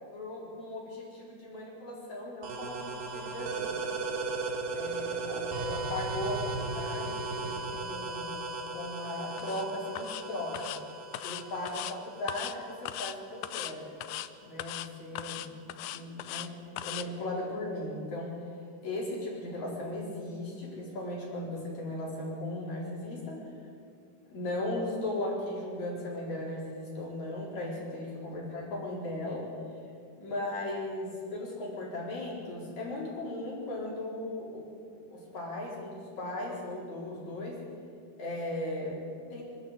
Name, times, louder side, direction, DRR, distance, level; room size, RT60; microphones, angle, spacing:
voice 1, 0.1-3.9 4.7-8.4 8.7-10.8 11.2-13.9 14.5-16.5 16.8-18.3 18.8-23.5 24.3-29.5 30.2-34.7 35.1-37.6 38.2-39.0 39.3-39.4, left 1 dB, 50° left, -4 dB, 5.7 m, -37 dB
sound 1, 2.4-13.8, right 3 dB, 80° right, 4.0 m, -37 dB
sound 2, 9.4-9.6 10.0-10.2 10.5-10.8 11.1-11.9 12.3-12.6 12.9-13.2 13.4-13.7 14.0-14.3 14.6-14.9 15.2-16.5 16.8-17.1, left 14 dB, 80° left, 1.8 m, -38 dB
24.5 x 13.0 x 8.2 m, 2.3 s
omnidirectional pair, 4.2 m